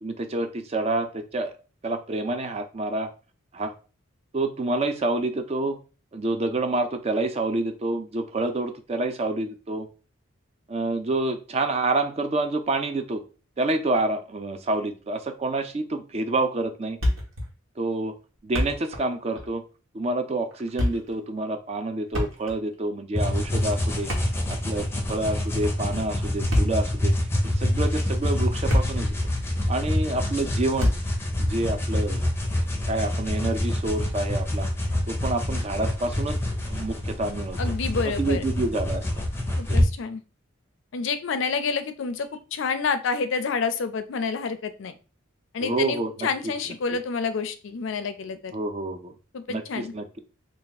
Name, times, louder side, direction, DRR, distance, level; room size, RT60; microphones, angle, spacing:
voice 1, 0.0-1.5 1.8-3.1 3.5-3.7 4.3-5.8 6.1-9.9 10.7-13.2 13.6-17.0 17.8-18.1 18.4-19.6 19.9-24.1 24.5-27.1 27.6-29.1 29.7-30.9 31.4-32.2 32.9-34.7 35.1-36.4 36.7-37.6 38.2-39.0 39.7-39.8 45.6-46.5 48.5-49.1 49.5-50.2, right 2 dB, 30° right, 7 dB, 0.4 m, -28 dB
Thump thud, 17.0-17.5 17.8-17.9 18.4-19.1 19.4-19.5 20.5-21.2 22.1-22.7 23.9-24.9 26.3-27.0 27.7-27.8 28.4-29.2 29.4-29.6 30.8-31.2, left 1 dB, 75° right, 1.3 m, -27 dB
sound 1, 23.1-39.9, left 1 dB, 10° left, 0.7 m, -26 dB
voice 2, 37.6-38.5 39.6-40.2 40.9-44.9 45.5-48.5 49.3-49.9, left 5 dB, 65° left, 11 dB, 0.4 m, -28 dB
3.3 x 2.3 x 4.0 m, 0.34 s
head